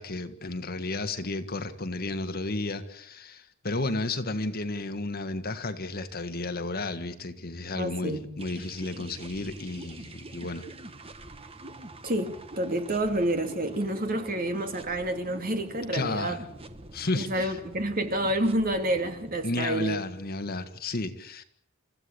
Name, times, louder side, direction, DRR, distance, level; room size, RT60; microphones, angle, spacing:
voice 1, 0.0-10.7 15.9-16.4 16.9-17.6 19.4-21.4, left 2 dB, 45° left, 1.7 m, -32 dB
voice 2, 7.7-8.3 12.0-16.4 17.1-20.0, right 1 dB, 45° right, 2.6 m, -29 dB
sound 1, 8.4-19.5, right 1 dB, 30° right, 1.4 m, -44 dB
29.0 x 15.0 x 8.5 m
head